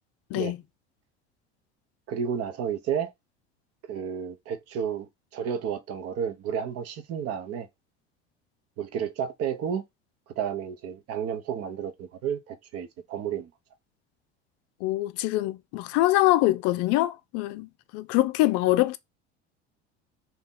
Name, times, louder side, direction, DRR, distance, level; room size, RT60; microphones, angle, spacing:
voice 1, 2.1-3.1 3.9-7.7 8.8-9.8 10.3-13.5, right 8 dB, 45° right, 1.0 m, -31 dB
voice 2, 14.8-17.7 17.9-19.0, left 17 dB, 50° left, 0.5 m, -24 dB
4.1 x 3.0 x 3.7 m
figure-of-eight pair, 70°, 33 cm